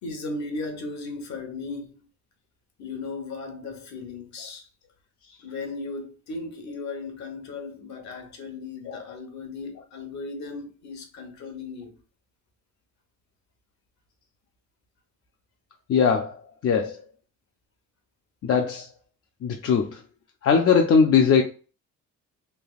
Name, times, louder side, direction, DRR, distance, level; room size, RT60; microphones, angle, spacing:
voice 1, 0.0-1.9 2.8-4.7 5.4-11.9, left 3 dB, 65° left, 1.1 m, -36 dB
voice 2, 15.9-16.4 16.6-16.9 18.4-18.9 19.4-20.0 20.4-21.4, left 6 dB, 50° left, 0.5 m, -20 dB
3.4 x 2.8 x 2.3 m
cardioid pair, 90°, 30 cm